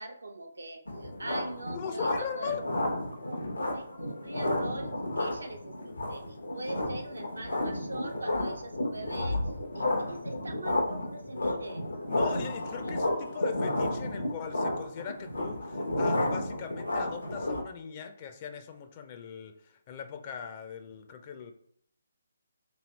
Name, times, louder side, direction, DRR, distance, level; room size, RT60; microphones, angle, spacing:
voice 1, 0.0-2.5 3.2-9.4 9.7-11.8 12.8-13.2, right 2 dB, 80° right, 4 dB, 0.7 m, -42 dB
sound 1, 0.9-17.6, left 1 dB, 80° left, 1.0 m, -32 dB
voice 2, 1.7-2.6 12.1-21.5, left 7 dB, 30° left, 6 dB, 0.5 m, -40 dB
3.2 x 2.8 x 4.0 m, 0.66 s
figure-of-eight pair, 145°, 0 cm